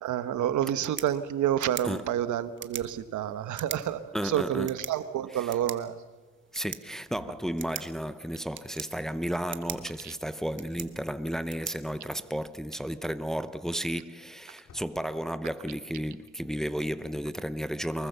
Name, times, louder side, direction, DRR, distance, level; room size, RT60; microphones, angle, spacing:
voice 1, 0.0-6.0 10.0-10.1, right 11 dB, 75° right, 1.3 m, -29 dB
sound 1, 0.6-12.6, right 7 dB, 40° right, 1.4 m, -44 dB
sound 2, 2.8-3.3 7.1-7.7 9.6-10.1 11.3-11.6 12.0-12.1 12.3-12.4 14.6-15.2, left 6 dB, 60° left, 3.0 m, -54 dB
voice 2, 4.1-4.7 6.5-18.1, equal, ahead, 0.8 m, -33 dB
24.0 x 21.0 x 6.9 m
cardioid pair, 90°, 30 cm